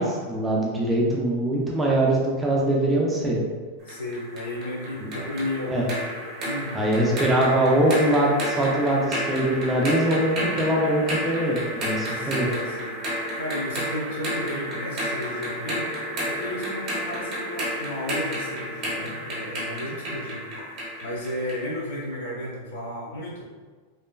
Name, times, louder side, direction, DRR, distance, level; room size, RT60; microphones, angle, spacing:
voice 1, 0.0-3.4 5.7-5.8 6.7-12.5, right 1 dB, 10° right, -3 dB, 0.3 m, -22 dB
voice 2, 3.8-5.9 6.4-6.8 12.1-15.9 16.3-20.7 21.0-23.4, left 1 dB, 85° left, -4 dB, 1.0 m, -34 dB
sound 1, 3.9-21.7, equal, 25° right, 0.8 m, -31 dB
3.0 x 2.2 x 2.2 m, 1.4 s
supercardioid pair, 165°, 0 cm